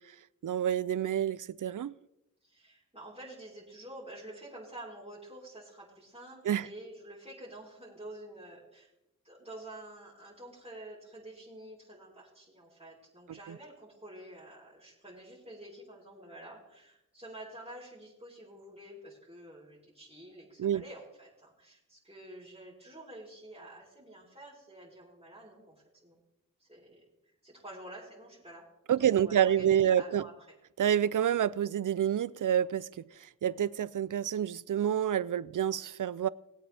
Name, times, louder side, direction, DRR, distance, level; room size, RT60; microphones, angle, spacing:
voice 1, 0.4-2.0 6.4-6.7 13.3-13.6 20.6-20.8 28.9-30.2 30.8-32.9 33.2-36.3, right 10 dB, 70° right, 0.5 m, -28 dB
voice 2, 2.4-8.9 9.2-26.2 26.6-28.6 29.0-30.3, right 1 dB, 20° right, 3.7 m, -49 dB
19.0 x 8.5 x 3.4 m
wide cardioid pair, 55°, 33 cm